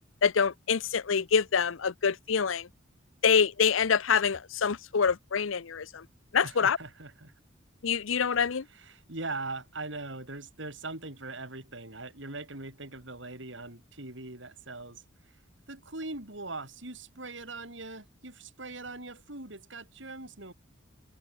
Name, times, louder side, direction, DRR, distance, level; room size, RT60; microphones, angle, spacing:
voice 1, 0.2-2.7 3.2-6.0 6.3-6.8 7.8-8.6, left 6 dB, 85° left, 0.7 m, -26 dB
voice 2, 6.4-7.3 8.7-15.4 15.7-20.5, right 2 dB, 65° right, 4.6 m, -41 dB
head